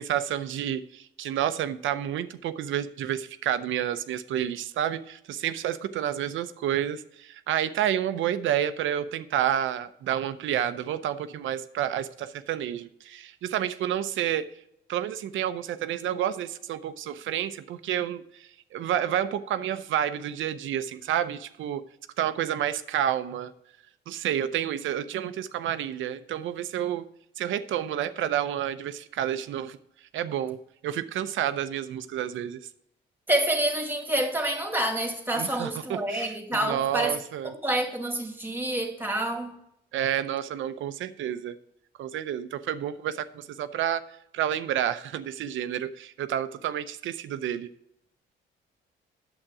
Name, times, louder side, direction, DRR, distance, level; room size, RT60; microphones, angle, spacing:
voice 1, 0.0-14.5 14.9-21.8 22.2-23.5 24.1-27.0 27.4-29.8 30.1-32.6 35.4-37.5 39.9-41.6 42.0-44.0 44.3-47.7, right 10 dB, 75° right, 0.7 m, -30 dB
voice 2, 33.3-37.2 37.6-39.5, right 1 dB, 10° right, 2.0 m, -27 dB
9.0 x 7.4 x 4.8 m
cardioid pair, 90°, 20 cm